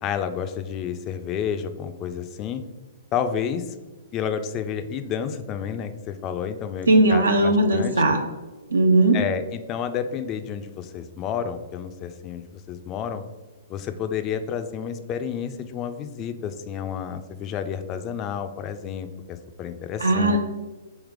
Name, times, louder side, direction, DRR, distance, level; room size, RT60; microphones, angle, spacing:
voice 1, 0.0-2.6 3.1-3.8 4.1-7.9 9.1-13.2 13.7-20.4, left 8 dB, 30° left, 9 dB, 0.3 m, -30 dB
voice 2, 6.9-8.2 8.7-9.2 20.0-20.4, right 2 dB, 80° right, 5 dB, 0.4 m, -18 dB
3.2 x 3.0 x 3.6 m, 1.2 s
figure-of-eight pair, 115°, 0 cm